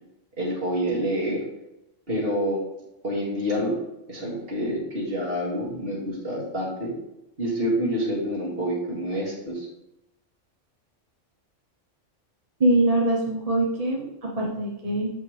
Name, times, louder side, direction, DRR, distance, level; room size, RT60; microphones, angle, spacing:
voice 1, 0.4-1.4 2.1-2.6 3.0-3.8 4.1-6.9 7.4-9.7, equal, 50° right, -5 dB, 2.4 m, -27 dB
voice 2, 12.6-15.1, right 1 dB, 35° right, -2 dB, 0.9 m, -23 dB
7.2 x 5.4 x 3.2 m, 0.90 s
omnidirectional pair, 1.3 m